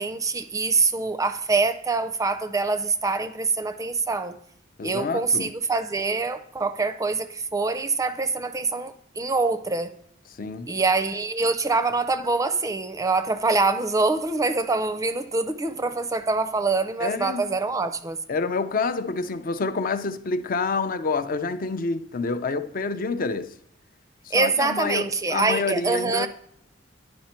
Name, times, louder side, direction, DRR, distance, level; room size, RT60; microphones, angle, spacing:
voice 1, 0.0-4.3 4.8-10.0 10.7-18.2 24.3-26.3, right 3 dB, 15° right, 0.5 m, -25 dB
voice 2, 4.8-5.5 10.4-10.7 17.0-17.4 18.3-23.5 24.3-25.0 25.3-26.3, left 4 dB, 45° left, 0.5 m, -27 dB
10.5 x 5.2 x 4.4 m
head